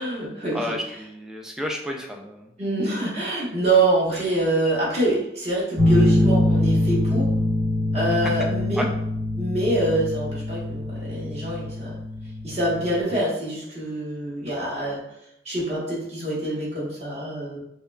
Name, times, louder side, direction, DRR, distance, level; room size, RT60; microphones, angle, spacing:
voice 1, 0.0-0.8 2.6-7.3 7.9-8.8 9.3-11.9 12.4-15.0 15.4-17.6, right 1 dB, 35° right, -6 dB, 1.3 m, -25 dB
voice 2, 0.5-2.5 8.7-8.9, equal, 5° right, 1 dB, 0.4 m, -31 dB
sound 1, 5.8-13.0, left 1 dB, 75° right, 1.2 m, -23 dB
5.3 x 2.1 x 2.4 m, 0.79 s
head